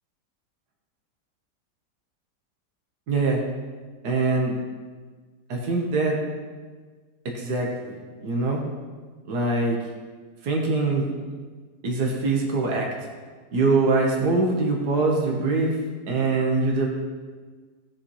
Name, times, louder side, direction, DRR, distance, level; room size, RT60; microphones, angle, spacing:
voice 1, 3.1-3.4 4.0-4.5 5.5-6.2 7.3-7.9 8.2-8.6 9.3-9.8 10.4-11.1 11.8-12.9 13.5-15.8 16.1-16.9, right 3 dB, 75° right, 0 dB, 1.9 m, -23 dB
16.5 x 7.0 x 3.2 m, 1.5 s
omnidirectional pair, 1.7 m